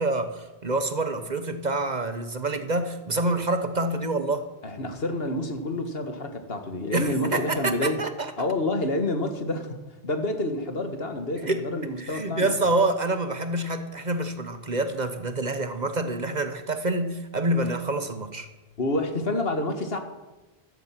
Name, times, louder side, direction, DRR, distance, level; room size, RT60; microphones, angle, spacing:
voice 1, 0.0-4.4 6.9-8.5 11.5-11.7 12.0-18.5, right 2 dB, 45° right, 9 dB, 1.1 m, -27 dB
voice 2, 4.6-8.0 8.4-12.5 18.8-20.0, left 1 dB, 65° left, 6 dB, 1.9 m, -28 dB
15.0 x 14.0 x 5.9 m, 1.1 s
omnidirectional pair, 1.1 m